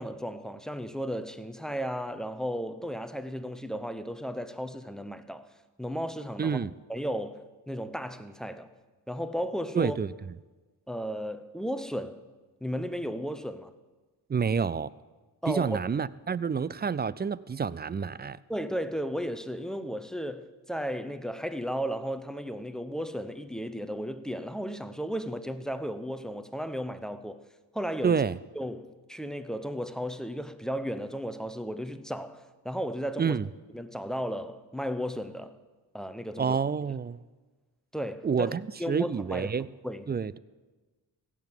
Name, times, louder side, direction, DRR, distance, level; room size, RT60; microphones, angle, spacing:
voice 1, 0.0-5.5 5.8-6.6 6.9-8.7 9.1-10.0 10.9-12.2 12.6-13.7 15.4-15.8 18.5-27.4 27.7-28.2 28.6-33.4 33.7-35.6 35.9-36.6 37.9-38.5 38.8-39.5 39.8-40.1, equal, ahead, 0.8 m, -34 dB
voice 2, 6.4-6.7 9.7-10.1 14.3-14.9 15.5-18.4 28.0-28.4 33.2-33.5 36.4-37.2 38.2-38.6 38.9-39.7 40.1-40.4, right 6 dB, 25° right, 0.3 m, -28 dB
16.0 x 6.2 x 7.3 m
cardioid pair, 45°, 46 cm